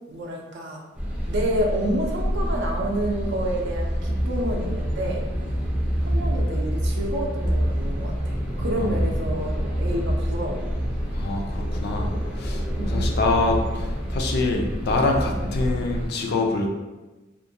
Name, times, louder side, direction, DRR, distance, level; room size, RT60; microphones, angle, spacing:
voice 1, 0.1-0.9 1.3-5.2 6.0-10.7 12.8-13.2 15.3-15.5, right 1 dB, 60° right, 0 dB, 0.5 m, -29 dB
sound 1, 1.0-16.1, equal, 5° right, 0.4 m, -27 dB
voice 2, 11.1-16.7, left 3 dB, 55° left, 2 dB, 0.4 m, -25 dB
2.4 x 2.1 x 2.7 m, 1.1 s
head